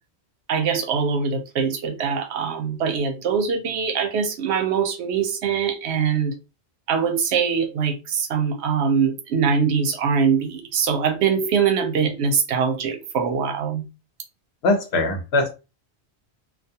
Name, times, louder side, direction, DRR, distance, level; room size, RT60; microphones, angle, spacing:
voice 1, 0.5-6.3 6.9-13.8, right 6 dB, 80° right, 0.9 m, -23 dB
voice 2, 14.6-15.5, left 2 dB, 70° left, 0.9 m, -21 dB
2.4 x 2.3 x 2.7 m
omnidirectional pair, 1.1 m